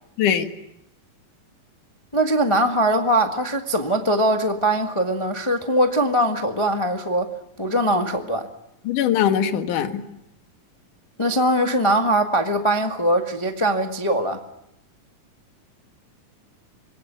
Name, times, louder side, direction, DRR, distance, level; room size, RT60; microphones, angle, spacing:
voice 1, 2.1-7.3 7.6-8.5 11.2-14.4, right 1 dB, 45° left, 0.4 m, -21 dB
voice 2, 8.8-10.0, left 9 dB, 65° left, 3.1 m, -21 dB
26.5 x 22.0 x 8.4 m
omnidirectional pair, 3.9 m